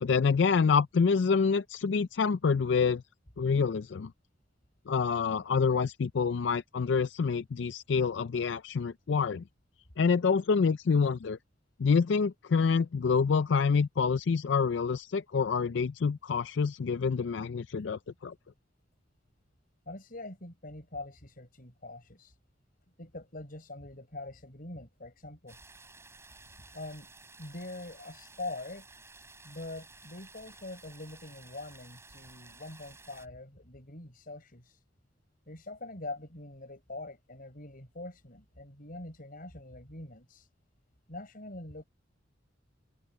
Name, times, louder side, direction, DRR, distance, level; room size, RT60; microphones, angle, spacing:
voice 1, 0.0-3.0 3.4-4.1 4.9-9.4 10.0-11.4 11.8-18.3, left 5 dB, 65° left, 0.4 m, -27 dB
voice 2, 19.9-22.4 23.0-25.6 26.7-27.1 27.4-28.8 29.4-34.8 35.5-40.5 41.1-41.8, left 2 dB, 50° left, 6.4 m, -44 dB
sound 1, 25.5-33.3, right 3 dB, 15° right, 5.2 m, -54 dB
open air
head